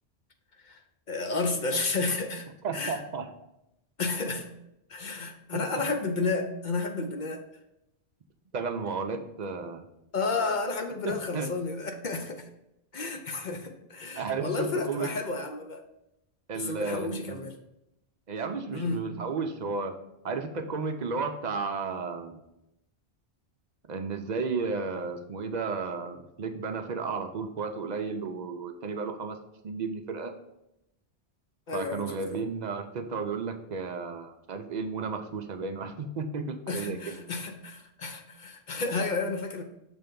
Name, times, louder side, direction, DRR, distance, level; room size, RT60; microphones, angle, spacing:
voice 1, 1.1-2.5 2.7-3.0 4.0-4.5 4.9-7.4 10.1-12.5 12.9-15.8 16.5-17.6 18.7-19.1 31.7-32.4 36.7-39.6, left 3 dB, 50° left, 5 dB, 0.7 m, -31 dB
voice 2, 2.6-3.3 5.5-5.6 8.5-9.9 11.0-11.5 14.1-15.1 16.5-17.4 18.3-19.9 20.2-22.4 23.9-29.4 29.6-30.3 31.7-37.2, right 4 dB, 50° right, 6 dB, 0.6 m, -33 dB
6.2 x 3.4 x 5.2 m, 0.86 s
omnidirectional pair, 1.1 m